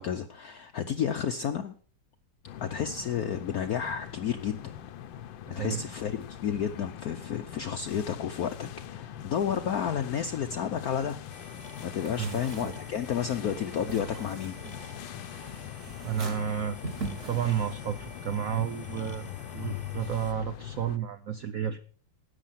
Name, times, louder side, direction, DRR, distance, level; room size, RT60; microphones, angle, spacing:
voice 1, 0.0-1.7 2.6-4.7 5.6-11.2 11.8-14.6, left 8 dB, 60° left, 7 dB, 1.1 m, -31 dB
sound 1, 2.4-21.0, left 11 dB, 75° left, 1.5 m, -42 dB
voice 2, 5.5-5.8 12.2-12.4 16.0-16.8 17.3-21.8, right 8 dB, 60° right, 9 dB, 1.0 m, -31 dB
sound 2, 11.3-20.3, left 2 dB, 25° left, 1.2 m, -50 dB
sound 3, 12.0-18.2, right 3 dB, 30° right, 2.1 m, -42 dB
13.0 x 9.2 x 5.7 m, 0.41 s
omnidirectional pair, 2.1 m